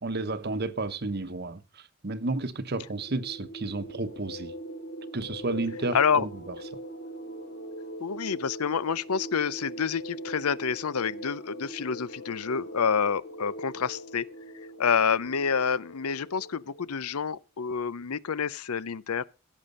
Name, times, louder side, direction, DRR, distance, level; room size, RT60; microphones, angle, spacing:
voice 1, 0.0-1.6 2.0-4.5 5.1-6.3, right 2 dB, 45° right, 1.0 m, -31 dB
sound 1, 2.6-17.0, right 1 dB, 50° left, 4.6 m, -42 dB
voice 2, 5.9-6.3 8.0-14.2 14.8-19.3, left 6 dB, 85° left, 0.6 m, -28 dB
16.5 x 7.4 x 5.4 m
head